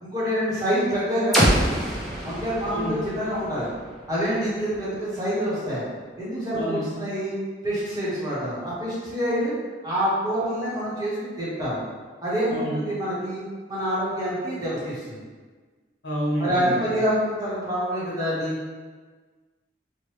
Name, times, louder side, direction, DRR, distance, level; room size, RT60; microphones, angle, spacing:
voice 1, 0.0-1.8 2.2-3.7 4.1-5.8 6.2-7.4 7.6-9.5 9.8-11.8 12.2-13.4 13.7-15.2 16.4-18.6, equal, 20° right, -9 dB, 0.9 m, -26 dB
sound 1, 1.3-5.2, equal, ahead, 0.5 m, -26 dB
voice 2, 16.0-16.9, right 1 dB, 75° left, -5 dB, 0.8 m, -28 dB
3.0 x 2.2 x 3.1 m, 1.4 s
head